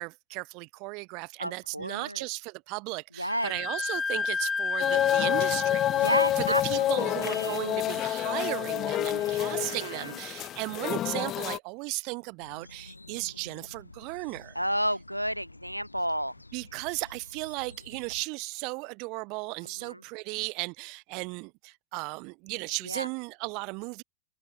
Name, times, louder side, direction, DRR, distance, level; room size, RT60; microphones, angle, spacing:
voice 1, 0.0-14.6 16.5-24.0, right 30 dB, 45° right, 3.1 m, -36 dB
voice 2, 1.4-2.3 3.2-3.5 5.9-7.6 9.1-10.2 14.6-16.3 19.8-20.0 22.8-23.1, equal, 90° right, 2.1 m, -32 dB
Wind instrument woodwind instrument, 3.3-10.7, left 4 dB, 15° left, 5.0 m, -35 dB
sound 1, 4.8-11.6, left 13 dB, 30° left, 0.4 m, -28 dB
sound 2, 12.4-18.2, left 2 dB, 85° left, 4.4 m, -51 dB
open air
figure-of-eight pair, 90°, 0 cm